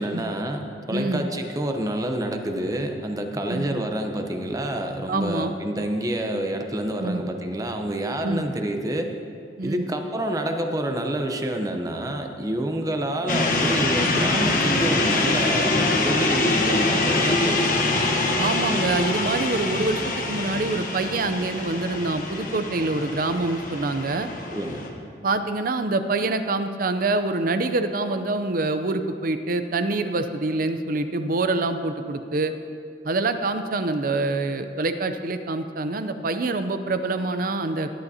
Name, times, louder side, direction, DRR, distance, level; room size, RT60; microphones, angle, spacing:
voice 1, 0.0-9.1 9.6-17.8 24.5-24.8, right 1 dB, 20° right, 4 dB, 0.8 m, -28 dB
voice 2, 0.9-1.2 3.5-3.7 5.1-5.5 7.0-7.2 8.2-8.4 9.6-9.9 18.4-24.3 25.2-32.5 33.0-37.9, right 2 dB, 55° right, 9 dB, 0.6 m, -25 dB
sound 1, 13.3-24.9, left 2 dB, 50° left, 1.2 m, -24 dB
17.5 x 10.5 x 2.8 m, 2.4 s
head